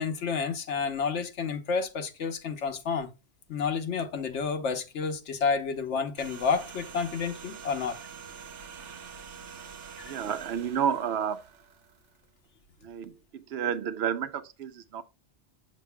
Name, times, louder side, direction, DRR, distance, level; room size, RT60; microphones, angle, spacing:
voice 1, 0.0-3.1 3.5-8.0 10.1-10.2, left 5 dB, 80° left, 1.2 m, -30 dB
sound 1, 6.2-12.5 12.8-12.9, right 6 dB, 85° right, 1.2 m, -46 dB
voice 2, 10.0-11.4 12.8-15.0, right 8 dB, 70° right, 0.8 m, -31 dB
7.5 x 6.4 x 2.2 m
omnidirectional pair, 1.2 m